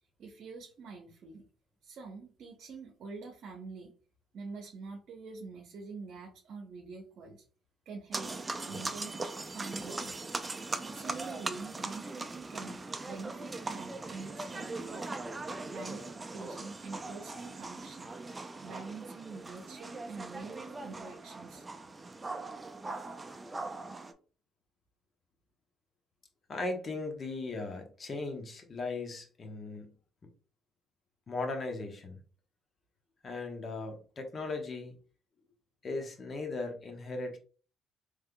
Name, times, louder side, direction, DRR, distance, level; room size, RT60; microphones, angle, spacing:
voice 1, 0.2-1.5 1.8-3.9 4.3-7.4 7.9-8.3 8.7-10.3 10.9-15.1 15.6-18.1 18.6-21.7, right 4 dB, 65° right, 2 dB, 0.8 m, -46 dB
sound 1, 8.1-24.1, right 3 dB, 25° right, 0.5 m, -40 dB
voice 2, 26.5-29.9 31.3-32.2 33.2-35.0 35.8-37.4, left 3 dB, 45° left, 3 dB, 1.1 m, -37 dB
3.5 x 3.3 x 2.2 m, 0.39 s
supercardioid pair, 65°, 0 cm